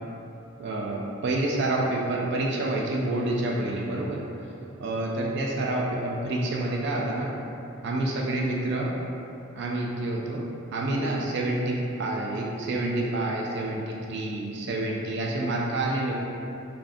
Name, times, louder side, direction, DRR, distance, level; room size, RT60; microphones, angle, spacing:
voice 1, 0.6-4.2 4.8-7.3 7.8-8.9 9.5-10.4 10.7-16.1, right 2 dB, 55° right, -2 dB, 0.3 m, -28 dB
2.4 x 2.4 x 3.4 m, 2.8 s
head